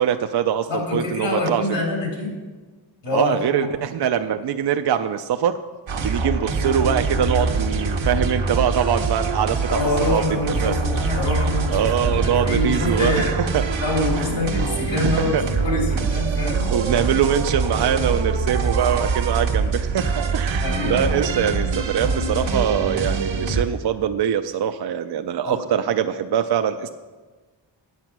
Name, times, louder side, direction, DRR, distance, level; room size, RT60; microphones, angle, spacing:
voice 1, 0.0-1.6 3.1-5.6 6.0-9.6 10.1-11.1 11.7-13.6 15.0-15.4 16.7-26.9, right 9 dB, 60° right, 7 dB, 0.5 m, -23 dB
voice 2, 0.7-2.3 3.0-3.4 9.7-13.3 13.8-16.7 20.6-21.1 25.4-25.6, left 2 dB, 75° left, -1 dB, 3.3 m, -25 dB
sound 1, 5.9-23.6, right 4 dB, 80° right, 1.3 m, -24 dB
sound 2, 14.2-14.6 14.9-15.3 15.9-16.1 16.5-16.7 17.0-17.2 17.7-17.8 18.1-18.2, left 1 dB, ahead, 0.7 m, -38 dB
9.6 x 8.2 x 6.0 m, 1.3 s
wide cardioid pair, 115°, 45 cm